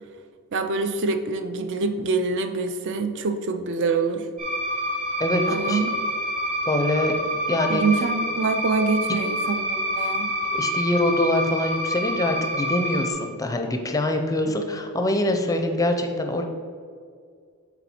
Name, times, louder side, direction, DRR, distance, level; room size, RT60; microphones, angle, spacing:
voice 1, 0.5-4.3 5.5-6.0 7.7-10.3, right 4 dB, 55° right, 7 dB, 0.5 m, -25 dB
sound 1, 4.4-13.1, equal, 30° right, 1.3 m, -27 dB
voice 2, 5.2-5.8 6.7-7.1 7.5-7.8 10.0-10.1 10.4-16.4, left 1 dB, 15° left, 5 dB, 0.5 m, -24 dB
7.0 x 4.0 x 4.3 m, 2.1 s
head